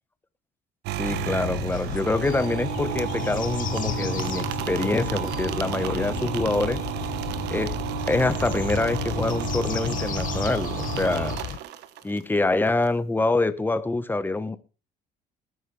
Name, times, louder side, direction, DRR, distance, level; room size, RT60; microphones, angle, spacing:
sound 1, 0.8-12.2, right 12 dB, 85° right, 1.2 m, -32 dB
sound 2, 1.0-11.6, left 11 dB, 50° left, 0.6 m, -33 dB
voice 1, 1.0-6.8 7.5-11.4 12.0-14.6, left 2 dB, 10° left, 13 dB, 1.1 m, -26 dB
20.0 x 9.3 x 3.3 m, 0.33 s
cardioid pair, 110°, 17 cm